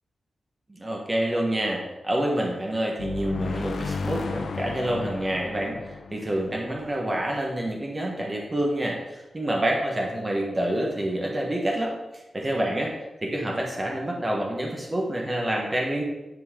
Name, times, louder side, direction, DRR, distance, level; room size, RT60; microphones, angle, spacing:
voice 1, 0.7-12.9 13.2-16.0, right 1 dB, 20° right, -1 dB, 1.2 m, -27 dB
sound 1, 3.0-7.6, left 4 dB, 70° left, 0.6 m, -33 dB
9.8 x 4.3 x 3.7 m, 0.99 s
wide cardioid pair, 135°, 0 cm